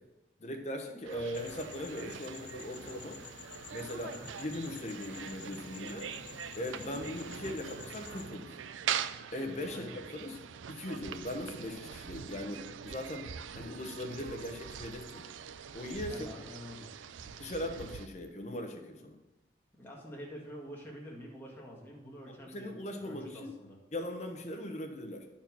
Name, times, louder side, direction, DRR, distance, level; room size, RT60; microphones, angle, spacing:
voice 1, 0.4-3.2 3.7-6.1 6.5-8.6 9.3-10.4 10.7-15.2 15.7-16.3 17.4-19.2 22.3-23.5 23.9-25.3, left 1 dB, 35° left, 4 dB, 1.0 m, -39 dB
sound 1, 1.0-18.1, right 8 dB, 85° right, 0.4 m, -43 dB
sound 2, 1.3-8.3, left 5 dB, 65° left, 0.7 m, -50 dB
voice 2, 16.1-16.9 17.2-17.4 19.7-23.8, equal, 10° left, -3 dB, 1.8 m, -47 dB
10.0 x 4.4 x 6.1 m, 1.0 s
head